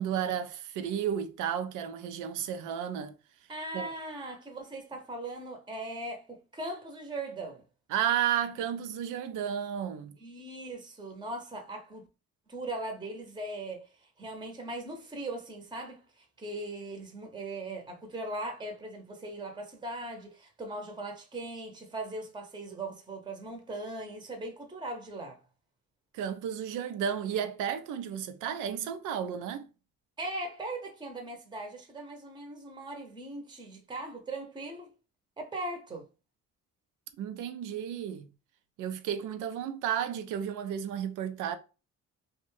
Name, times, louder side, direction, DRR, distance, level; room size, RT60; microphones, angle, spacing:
voice 1, 0.0-3.1 3.7-3.9 7.9-10.2 26.1-29.7 37.2-38.3 38.8-41.6, right 9 dB, 90° right, 0.5 m, -32 dB
voice 2, 3.5-6.3 6.5-7.6 10.2-12.1 12.5-13.9 14.2-25.4 30.2-34.9 35.4-36.1, right 2 dB, 15° right, 0.7 m, -39 dB
2.6 x 2.2 x 3.1 m
cardioid pair, 90°, 30 cm